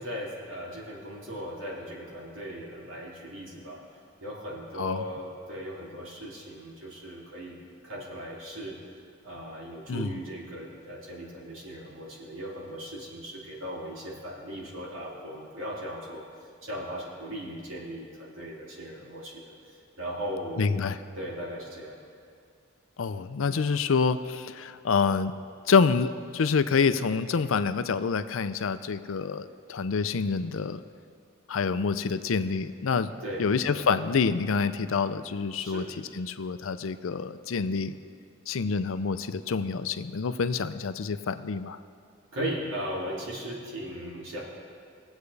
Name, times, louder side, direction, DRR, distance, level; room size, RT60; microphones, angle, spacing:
voice 1, 0.0-3.8 4.2-7.6 7.8-8.8 9.2-16.2 16.6-19.3 20.0-20.8 21.2-22.0 33.2-33.8 35.5-35.9 42.3-44.4, equal, 80° right, -4 dB, 2.7 m, -37 dB
voice 2, 20.6-21.0 23.0-25.3 25.7-30.8 31.5-33.1 33.4-37.9 38.5-41.8, left 5 dB, 85° left, 11 dB, 0.5 m, -27 dB
22.5 x 8.1 x 3.3 m, 2.3 s
head